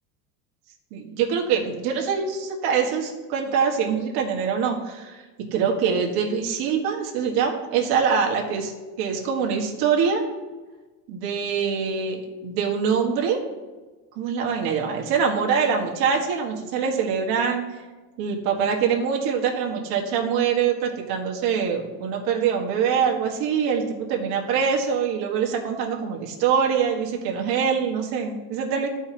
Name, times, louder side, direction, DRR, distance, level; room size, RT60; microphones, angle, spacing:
voice 1, 0.9-5.2 5.5-8.7 9.0-10.2 11.1-13.4 14.2-17.7 18.2-28.9, right 6 dB, 55° right, 0 dB, 1.7 m, -24 dB
13.5 x 4.9 x 2.9 m, 1.3 s
supercardioid pair, 140°, 45 cm